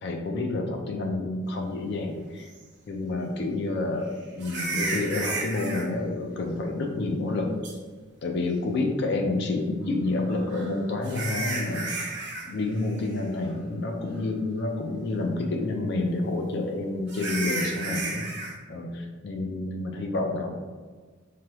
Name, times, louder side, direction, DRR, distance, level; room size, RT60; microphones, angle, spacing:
voice 1, 0.0-2.5 2.9-7.6 8.2-11.9 12.5-18.3 18.7-20.5, left 2 dB, 55° left, 2 dB, 0.4 m, -29 dB
sound 1, 2.5-2.6 4.4-5.8 7.6-7.7 10.3-12.5 12.7-13.1 13.5-13.6 14.2-14.3 17.1-18.5, right 3 dB, 55° right, 0.6 m, -32 dB
3.2 x 2.2 x 2.9 m, 1.5 s
head